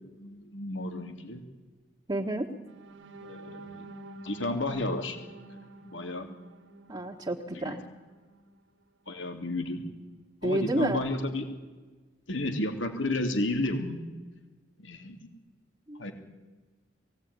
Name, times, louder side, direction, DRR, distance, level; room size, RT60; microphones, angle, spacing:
voice 1, 0.0-1.4 3.2-3.9 4.2-5.2 5.5-6.3 7.5-7.7 9.1-9.8 10.4-11.5 12.3-14.0 14.8-15.2 16.0-16.1, left 1 dB, 85° left, 6 dB, 2.9 m, -32 dB
voice 2, 2.1-2.5 6.9-7.8 10.4-11.0 15.9-16.0, right 1 dB, 25° right, -3 dB, 1.6 m, -29 dB
sound 1, 2.6-8.6 9.1-9.2 9.6-9.8, right 2 dB, 75° right, 1.3 m, -49 dB
22.0 x 17.5 x 9.6 m, 1.3 s
head